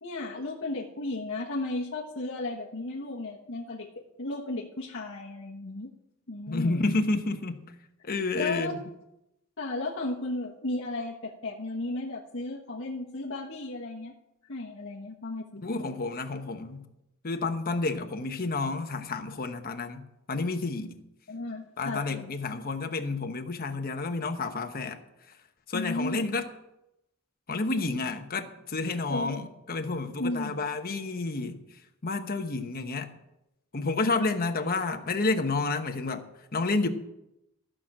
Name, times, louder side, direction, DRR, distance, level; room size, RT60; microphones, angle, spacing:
voice 1, 0.0-3.9 4.2-5.9 6.3-6.8 8.3-8.7 9.6-14.1 14.5-15.9 21.3-22.3 25.7-26.3 29.1-29.4 30.2-30.6, left 2 dB, 65° left, 1.2 m, -34 dB
voice 2, 6.5-7.7 8.0-8.8 15.6-16.8 17.2-21.0 21.8-25.0 25.7-26.5 27.5-31.6 32.0-33.1 33.7-36.9, left 3 dB, 45° left, 1.1 m, -30 dB
14.0 x 6.2 x 7.4 m
head